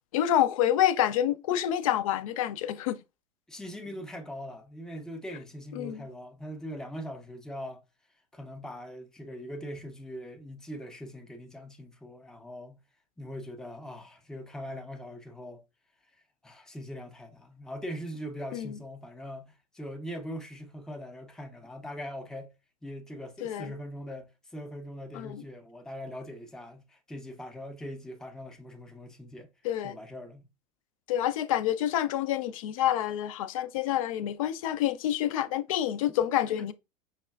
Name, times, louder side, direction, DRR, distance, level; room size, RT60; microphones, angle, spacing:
voice 1, 0.1-3.0 5.7-6.0 18.5-18.7 23.4-23.7 25.1-25.4 29.6-29.9 31.1-36.7, left 11 dB, 60° left, 0.4 m, -27 dB
voice 2, 3.5-7.8 8.3-12.8 13.2-15.6 16.4-22.5 22.8-29.5 29.8-30.4 36.1-36.2 36.5-36.7, equal, 5° left, 0.5 m, -41 dB
5.4 x 2.3 x 2.2 m
figure-of-eight pair, 75°, 20 cm